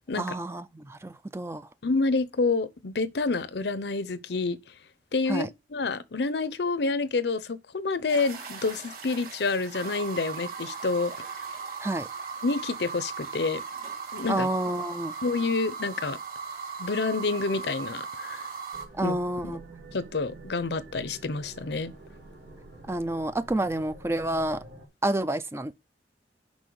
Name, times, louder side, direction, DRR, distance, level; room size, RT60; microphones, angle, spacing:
voice 1, 0.2-1.7 5.3-5.5 11.8-12.1 14.3-15.2 18.9-19.6 22.9-24.6 25.0-25.7, right 1 dB, 15° right, 0.4 m, -29 dB
voice 2, 1.8-4.6 5.1-11.3 12.4-13.6 14.1-14.5 15.2-16.2 16.8-18.5 19.0-19.2 19.4-19.6 19.9-21.9, left 3 dB, 70° left, 0.7 m, -28 dB
sound 1, 8.1-18.8, right 5 dB, 55° right, 2.8 m, -38 dB
sound 2, 18.7-24.9, right 2 dB, 85° right, 2.8 m, -48 dB
6.2 x 5.4 x 6.9 m
head